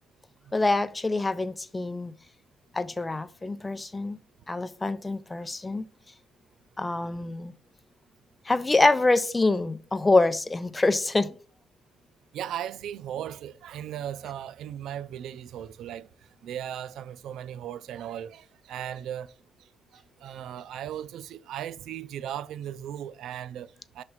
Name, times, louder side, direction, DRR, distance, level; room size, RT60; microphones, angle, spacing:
voice 1, 0.5-2.1 2.7-4.2 4.5-5.8 6.8-7.5 8.5-11.3, left 2 dB, 20° left, 0.5 m, -25 dB
voice 2, 12.3-16.1 16.4-19.3 19.6-24.0, right 10 dB, 80° right, 0.3 m, -37 dB
5.6 x 3.2 x 5.5 m
cardioid pair, 90°, 0 cm